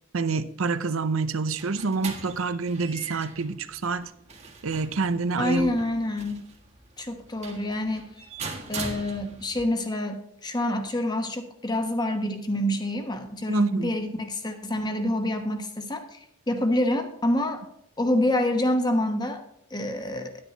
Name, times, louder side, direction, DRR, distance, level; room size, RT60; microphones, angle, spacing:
voice 1, 0.1-4.1 4.6-5.7 13.5-13.9, right 4 dB, 80° right, 12 dB, 0.7 m, -27 dB
sound 1, 1.2-9.7, right 4 dB, 30° right, 1.6 m, -41 dB
voice 2, 5.4-6.4 7.0-8.1 8.7-16.2 16.5-17.6 18.0-19.4 19.7-20.3, left 1 dB, 20° left, 6 dB, 1.2 m, -27 dB
10.5 x 9.8 x 4.0 m, 0.74 s
head